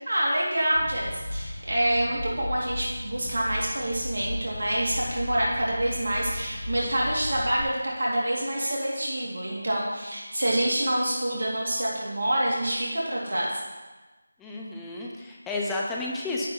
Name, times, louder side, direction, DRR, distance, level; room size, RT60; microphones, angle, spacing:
voice 1, 0.1-13.5, right 1 dB, 60° right, -4 dB, 2.4 m, -27 dB
sound 1, 0.8-7.6, left 1 dB, 45° left, 2.3 m, -36 dB
voice 2, 14.4-16.5, left 2 dB, 5° left, -3 dB, 1.0 m, -31 dB
11.0 x 8.7 x 3.0 m, 1.2 s
figure-of-eight pair, 165°, 0 cm